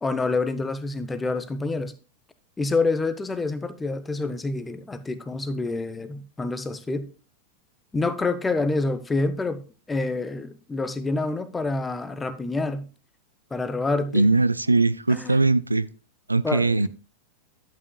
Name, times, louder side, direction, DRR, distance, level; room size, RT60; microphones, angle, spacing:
voice 1, 0.0-1.9 2.6-7.0 7.9-9.6 9.9-12.9 13.5-14.3 15.1-15.5 16.4-16.9, left 3 dB, 10° left, 12 dB, 0.8 m, -27 dB
voice 2, 14.1-15.9 16.3-16.9, right 3 dB, 80° right, 17 dB, 0.3 m, -20 dB
11.0 x 8.4 x 2.2 m, 0.34 s
figure-of-eight pair, 90°, 0 cm